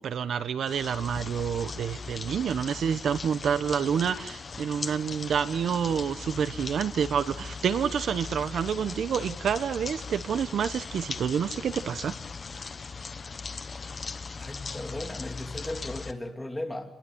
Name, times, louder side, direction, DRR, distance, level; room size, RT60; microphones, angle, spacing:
voice 1, 0.0-12.1, right 7 dB, 60° right, 12 dB, 1.0 m, -28 dB
sound 1, 0.7-16.1, left 4 dB, 35° left, 1.1 m, -39 dB
voice 2, 14.4-16.9, left 1 dB, 10° left, 3 dB, 3.0 m, -36 dB
28.5 x 21.5 x 8.0 m, 0.87 s
cardioid pair, 135°, 0 cm